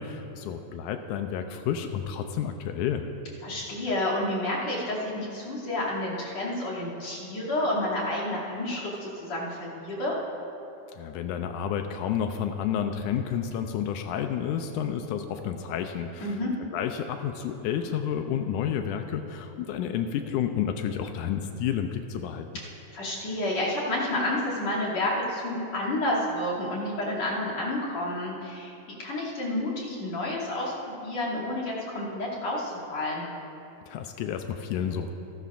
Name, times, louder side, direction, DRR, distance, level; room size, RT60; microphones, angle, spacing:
voice 1, 0.0-3.1 10.9-16.4 16.7-22.5 33.9-35.1, left 8 dB, 85° left, 6 dB, 2.1 m, -30 dB
voice 2, 3.4-10.2 16.2-16.5 22.5-22.6 22.9-28.7 29.0-30.7 31.0-33.3, left 1 dB, 55° left, -7 dB, 3.8 m, -30 dB
28.0 x 12.5 x 2.5 m, 2.9 s
omnidirectional pair, 3.6 m